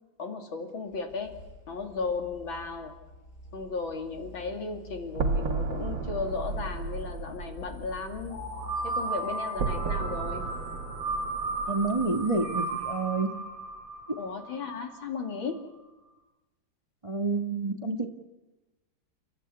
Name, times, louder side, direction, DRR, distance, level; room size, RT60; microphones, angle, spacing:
voice 1, 0.2-1.4 1.7-3.0 3.5-8.4 8.8-10.5 14.2-15.7, left 4 dB, 85° left, 5 dB, 3.3 m, -35 dB
sound 1, 0.7-11.5, left 1 dB, 50° left, 5.8 m, -48 dB
sound 2, 5.1-9.2 9.5-12.9, right 4 dB, 70° right, 2.4 m, -34 dB
sound 3, 8.3-15.1, right 3 dB, 45° right, 7.8 m, -35 dB
voice 2, 11.7-13.3 14.1-14.2 17.0-18.1, right 3 dB, 20° right, 4 dB, 1.5 m, -28 dB
29.5 x 13.5 x 9.7 m, 1.1 s
omnidirectional pair, 2.1 m